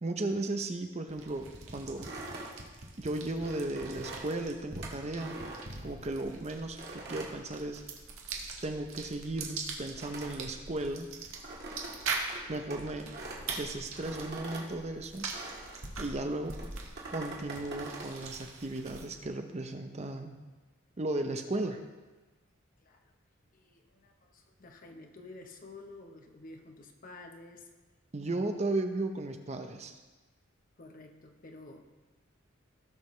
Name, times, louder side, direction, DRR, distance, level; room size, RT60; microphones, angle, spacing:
voice 1, 0.0-1.5 1.7-2.1 3.0-5.4 5.8-7.8 8.6-11.1 12.5-13.1 13.6-15.3 16.0-16.6 17.1-20.4 21.0-21.8 28.1-30.0, right 2 dB, 30° right, 6 dB, 0.6 m, -35 dB
sound 1, 1.1-19.3, right 4 dB, 75° right, 1.5 m, -43 dB
sound 2, 2.0-6.3 6.8-8.3 8.5-15.9 16.5-18.2, right 2 dB, 50° right, 1.9 m, -44 dB
voice 2, 22.8-23.1 23.5-27.7 30.8-31.9, left 2 dB, 40° left, 4 dB, 1.0 m, -51 dB
17.5 x 6.4 x 3.2 m, 1.2 s
head